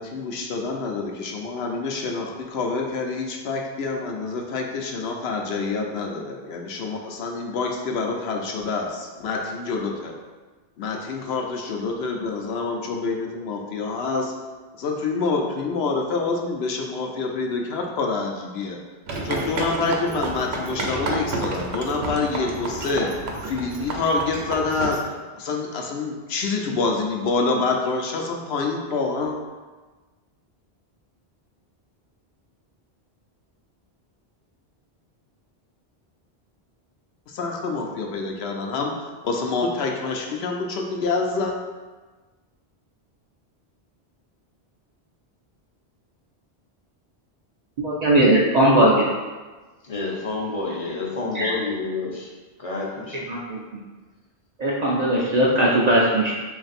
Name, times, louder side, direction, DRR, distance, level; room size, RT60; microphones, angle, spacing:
voice 1, 0.0-10.1 10.8-14.3 14.8-18.8 19.2-23.1 23.5-25.0 25.4-29.4 37.3-41.6, left 4 dB, 75° left, 1 dB, 0.8 m, -27 dB
sound 1, 19.1-25.0, right 2 dB, 80° right, 0.9 m, -30 dB
voice 2, 47.8-49.1 51.3-51.5 53.3-53.6 54.6-56.3, right 1 dB, 50° right, -4 dB, 0.5 m, -19 dB
voice 3, 49.8-52.3 52.6-53.2, left 3 dB, 40° left, -3 dB, 0.6 m, -29 dB
3.2 x 2.5 x 4.0 m, 1.3 s
omnidirectional pair, 1.1 m